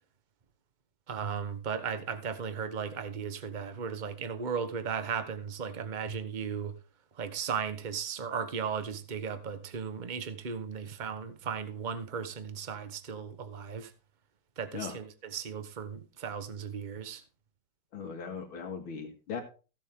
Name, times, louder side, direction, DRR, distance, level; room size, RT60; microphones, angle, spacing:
voice 1, 1.1-6.7 7.1-13.9 14.6-17.2, right 6 dB, 30° right, 0.9 m, -36 dB
voice 2, 17.9-19.4, left 6 dB, 85° left, 2.8 m, -38 dB
16.0 x 7.5 x 3.6 m
omnidirectional pair, 2.3 m